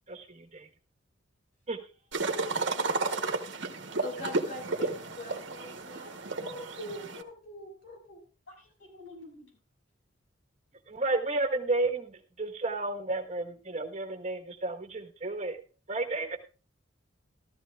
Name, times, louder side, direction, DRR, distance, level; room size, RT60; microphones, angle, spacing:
voice 1, 0.1-0.7 1.7-1.8 10.9-15.6 15.9-16.4, right 2 dB, 35° right, 5 dB, 1.3 m, -32 dB
sound 1, 2.1-7.2, right 3 dB, 65° right, 1.2 m, -32 dB
voice 2, 2.2-3.1 8.5-9.6, left 2 dB, 80° left, 1 dB, 6.6 m, -49 dB
voice 3, 4.0-6.1 6.4-8.2, left 1 dB, 50° left, 2 dB, 3.4 m, -42 dB
14.0 x 13.5 x 2.4 m, 0.35 s
head